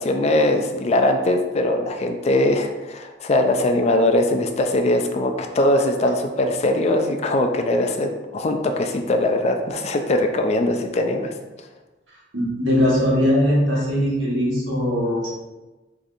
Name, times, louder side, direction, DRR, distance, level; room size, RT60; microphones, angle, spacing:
voice 1, 0.0-11.3, left 1 dB, 35° left, 5 dB, 0.3 m, -21 dB
voice 2, 12.3-15.3, equal, 90° right, -5 dB, 1.3 m, -20 dB
4.9 x 2.7 x 2.5 m, 1.1 s
head